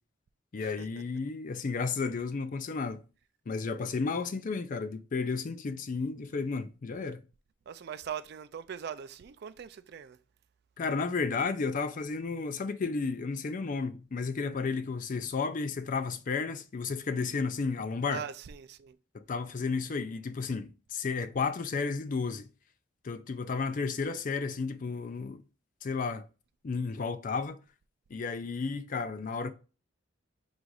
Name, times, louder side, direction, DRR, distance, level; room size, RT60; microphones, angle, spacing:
voice 1, 0.5-3.0 3.5-7.2 10.8-18.2 19.1-22.5 23.0-25.4 25.8-26.2 26.6-27.6 28.1-29.5, left 4 dB, 40° left, 0.4 m, -32 dB
voice 2, 7.7-10.2 18.0-19.0, right 8 dB, 55° right, 0.3 m, -41 dB
3.9 x 2.4 x 4.6 m
head